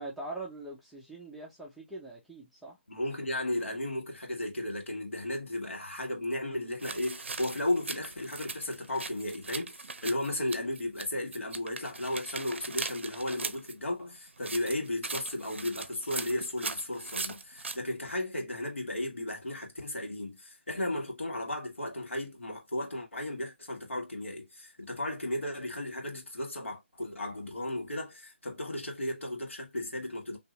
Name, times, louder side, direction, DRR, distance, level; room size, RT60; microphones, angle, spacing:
voice 1, 0.0-2.8, right 2 dB, ahead, 0.6 m, -42 dB
voice 2, 2.9-30.4, left 1 dB, 85° left, 1.6 m, -35 dB
sound 1, 6.8-11.1 11.3-13.7 14.4-17.8, right 4 dB, 70° right, 0.5 m, -39 dB
2.8 x 2.5 x 3.1 m
figure-of-eight pair, 155°, 7 cm